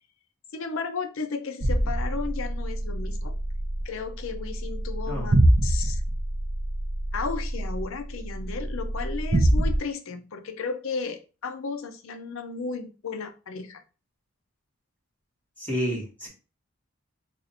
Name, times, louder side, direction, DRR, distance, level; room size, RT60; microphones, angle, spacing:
voice 1, 0.5-3.4 3.8-5.3 5.6-6.0 7.1-13.8, left 4 dB, 70° left, 7 dB, 0.5 m, -34 dB
sound 1, 1.6-9.8, right 1 dB, 30° right, 0.4 m, -26 dB
voice 2, 15.6-16.3, equal, 10° left, -6 dB, 1.3 m, -30 dB
2.7 x 2.4 x 4.0 m, 0.33 s
head